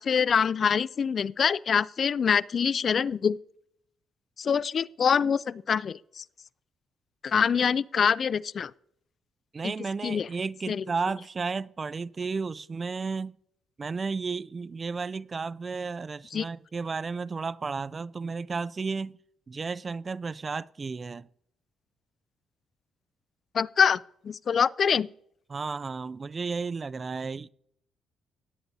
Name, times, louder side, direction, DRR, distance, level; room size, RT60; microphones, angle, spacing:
voice 1, 0.0-3.4 4.4-6.2 7.2-8.7 10.0-10.3 10.7-10.8 16.3-16.4 23.5-24.0 24.2-25.1, left 7 dB, 50° left, 0.3 m, -25 dB
voice 2, 9.5-13.3 13.8-19.2 19.5-21.3 25.5-27.5, right 4 dB, 35° right, 0.3 m, -33 dB
18.0 x 9.1 x 2.7 m
cardioid pair, 90°, 0 cm